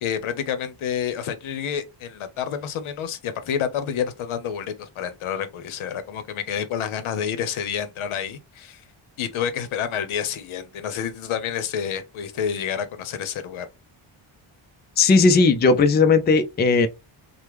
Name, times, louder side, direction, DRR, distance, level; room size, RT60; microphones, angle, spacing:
voice 1, 0.0-8.8 9.2-13.7, left 8 dB, 75° left, 0.8 m, -29 dB
voice 2, 15.0-16.9, left 4 dB, 25° left, 0.4 m, -17 dB
3.4 x 2.1 x 3.0 m
cardioid pair, 115°, 49 cm